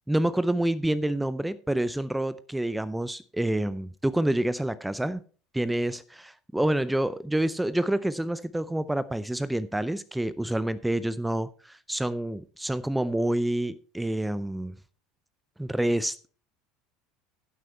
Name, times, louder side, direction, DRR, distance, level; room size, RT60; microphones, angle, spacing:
voice 1, 0.1-5.2 5.5-14.7 15.6-16.3, right 1 dB, 5° right, 17 dB, 0.5 m, -28 dB
10.5 x 7.7 x 4.3 m, 0.41 s
hypercardioid pair, 75°, 0 cm